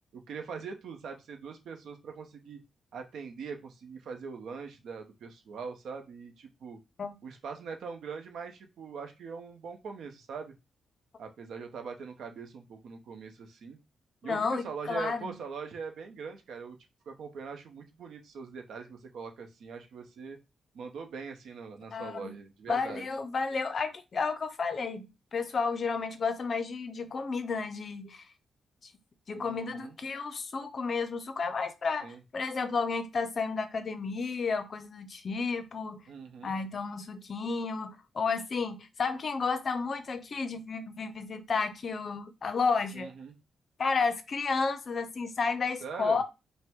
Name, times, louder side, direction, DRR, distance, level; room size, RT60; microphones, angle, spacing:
voice 1, 0.1-2.6 2.9-6.8 7.2-10.5 11.2-13.8 14.2-16.8 17.1-20.4 20.7-23.0 29.3-30.0 32.0-32.2 36.1-36.6 42.9-43.3 45.8-46.2, right 5 dB, 65° right, 0.8 m, -42 dB
voice 2, 14.2-15.3 21.9-22.3 22.7-28.2 29.3-36.0 36.4-43.1 43.8-46.2, left 4 dB, 35° left, 0.5 m, -32 dB
5.4 x 2.1 x 3.6 m
wide cardioid pair, 175°, 0 cm